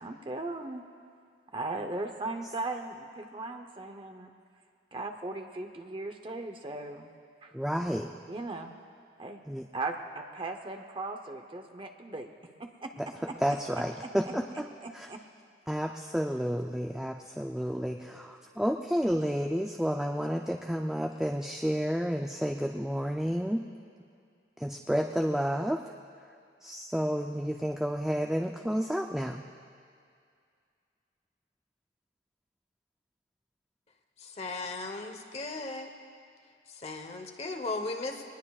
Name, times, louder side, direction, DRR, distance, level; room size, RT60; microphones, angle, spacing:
voice 1, 0.0-0.8 1.5-4.3 4.9-7.1 7.4-7.5 8.3-8.7 9.2-9.4 9.7-12.3 12.6-13.4 14.2-14.3 14.8-15.2, right 2 dB, 30° right, 5 dB, 0.8 m, -38 dB
voice 2, 7.5-8.1 9.5-9.6 13.0-13.1 13.4-14.6 14.9-15.1 15.7-23.6 24.6-25.8 26.6-29.4, equal, 5° right, 1 dB, 0.5 m, -30 dB
voice 3, 34.2-35.9 36.7-38.2, left 3 dB, 35° left, 4 dB, 1.1 m, -37 dB
23.0 x 19.5 x 2.4 m, 2.2 s
head